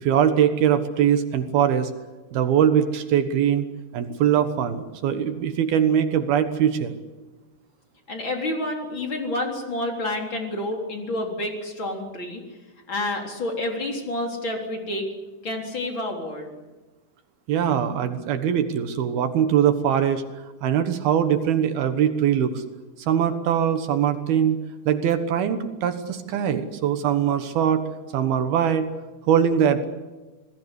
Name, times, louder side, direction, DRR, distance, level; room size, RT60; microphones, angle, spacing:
voice 1, 0.0-1.9 2.3-3.6 3.9-7.0 17.5-20.2 20.6-22.6 23.1-27.8 28.1-28.9 29.3-29.8, right 9 dB, 70° right, 9 dB, 3.0 m, -22 dB
voice 2, 8.1-12.4 12.9-15.1 15.4-16.5, left 1 dB, 30° left, 2 dB, 4.1 m, -29 dB
27.0 x 19.5 x 8.2 m, 1.2 s
omnidirectional pair, 5.0 m